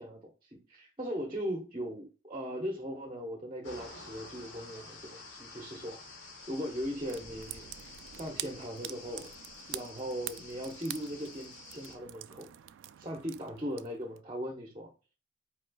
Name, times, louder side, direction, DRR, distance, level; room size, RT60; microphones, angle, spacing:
voice 1, 0.0-6.0 6.5-7.7 8.1-9.3 9.7-12.5 13.0-14.9, equal, 25° right, 2 dB, 0.9 m, -39 dB
sound 1, 3.6-12.0, left 3 dB, 80° left, 1.5 m, -50 dB
sound 2, 7.1-14.2, right 14 dB, 80° right, 0.3 m, -46 dB
5.2 x 4.3 x 2.3 m, 0.33 s
head